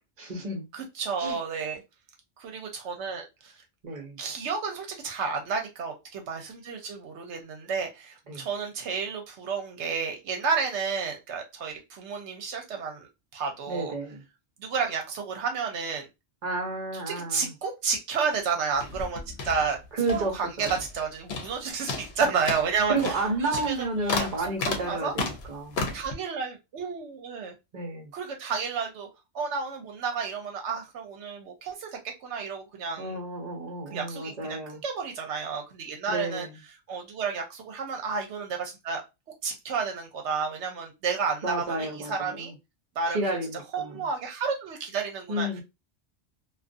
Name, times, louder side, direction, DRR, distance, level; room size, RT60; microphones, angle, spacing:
voice 1, 0.2-0.6 1.2-1.4 3.8-4.2 8.3-8.5 13.7-14.2 16.4-17.5 19.9-20.7 22.9-25.8 27.7-28.1 33.0-34.8 36.1-36.6 41.4-42.5 43.1-44.0 45.3-45.6, right 2 dB, 40° right, 0.8 m, -31 dB
voice 2, 0.7-1.8 2.4-3.6 3.9-13.9 14.6-16.1 16.9-19.8 20.1-24.3 24.6-25.1 25.9-27.5 28.1-29.1 29.3-31.9 32.2-33.2 33.9-36.5 36.9-39.0 39.4-42.5 43.0-45.6, right 5 dB, 75° right, 0.9 m, -31 dB
sound 1, 18.7-20.4 20.6-21.0 21.3-21.6 21.9-26.1, left 3 dB, 70° left, 0.8 m, -33 dB
2.4 x 2.3 x 2.4 m
omnidirectional pair, 1.2 m